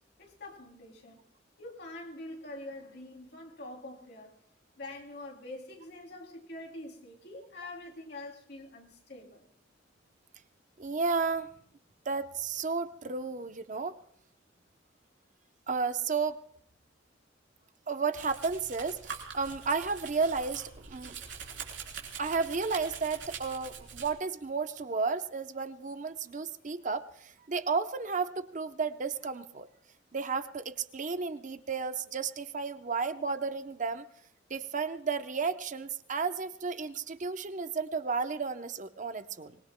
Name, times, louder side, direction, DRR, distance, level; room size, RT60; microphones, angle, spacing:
voice 1, 0.2-1.2 1.6-4.4 4.8-9.5, left 2 dB, 60° left, 3.0 m, -45 dB
voice 2, 10.8-11.5 12.1-14.0 15.7-16.4 17.9-21.1 22.2-29.7 30.1-34.0 34.5-39.6, right 4 dB, 40° right, 0.7 m, -33 dB
Domestic sounds home sounds, 18.1-24.1, right 6 dB, 75° right, 3.5 m, -44 dB
25.0 x 21.0 x 2.2 m
head